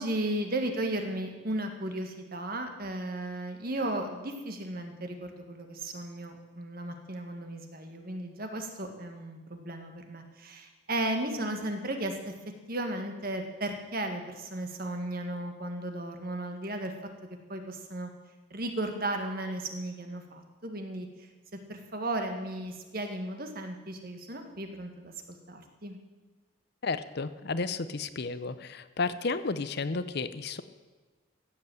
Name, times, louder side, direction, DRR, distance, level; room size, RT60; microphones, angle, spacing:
voice 1, 0.0-12.3 12.7-16.9 17.5-18.1 18.5-21.1 21.7-25.1 25.5-26.0, right 1 dB, 45° right, 5 dB, 1.7 m, -35 dB
voice 2, 26.8-30.6, left 4 dB, 50° left, 13 dB, 0.6 m, -32 dB
14.5 x 8.2 x 7.8 m, 1.3 s
head